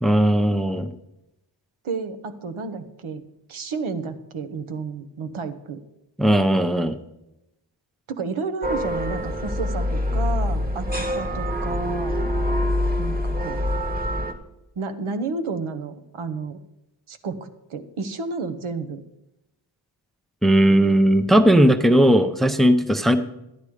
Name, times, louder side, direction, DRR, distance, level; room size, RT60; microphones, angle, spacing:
voice 1, 0.0-0.9 6.2-6.9 20.4-23.2, right 1 dB, ahead, 9 dB, 0.6 m, -17 dB
voice 2, 1.8-5.8 8.1-12.2 13.0-13.6 14.8-16.6 17.1-19.0, right 4 dB, 90° right, 8 dB, 1.1 m, -31 dB
sound 1, 8.6-14.3, left 1 dB, 20° right, 1.2 m, -25 dB
12.0 x 9.6 x 4.9 m, 0.90 s
wide cardioid pair, 110°, 48 cm